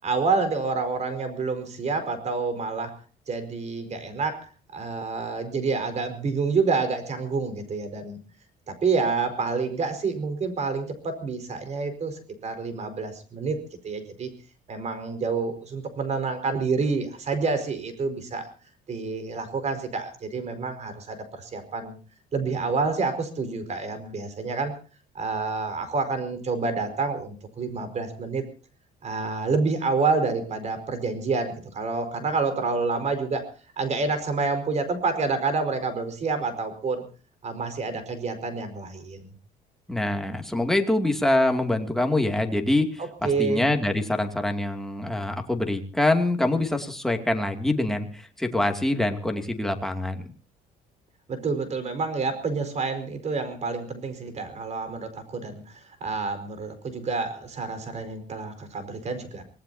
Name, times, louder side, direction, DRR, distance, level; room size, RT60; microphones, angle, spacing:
voice 1, 0.0-2.9 3.3-4.5 4.7-8.2 8.7-13.6 13.8-14.3 14.7-18.5 18.9-22.0 22.3-24.7 25.1-28.4 29.0-33.5 33.8-37.0 37.4-39.2 43.0-43.7 51.3-59.4, right 4 dB, 40° right, 10 dB, 4.8 m, -28 dB
voice 2, 39.9-50.2, left 1 dB, ahead, 4 dB, 2.5 m, -25 dB
25.5 x 18.5 x 2.8 m, 0.39 s
cardioid pair, 110°, 17 cm